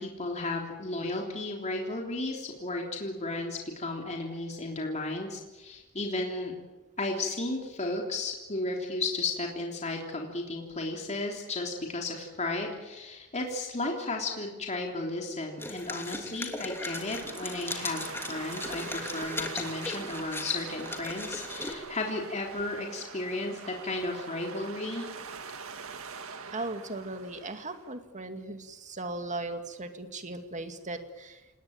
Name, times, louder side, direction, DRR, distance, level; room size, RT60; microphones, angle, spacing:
voice 1, 0.0-6.5 7.0-25.1, left 2 dB, 35° left, 1 dB, 3.4 m, -34 dB
sound 1, 15.6-21.7, left 2 dB, 10° left, 2.9 m, -38 dB
sound 2, 16.8-27.9, right 5 dB, 70° right, 2.0 m, -43 dB
voice 2, 26.5-31.4, right 2 dB, 35° right, 7 dB, 2.3 m, -37 dB
28.0 x 19.5 x 8.9 m, 1.1 s
head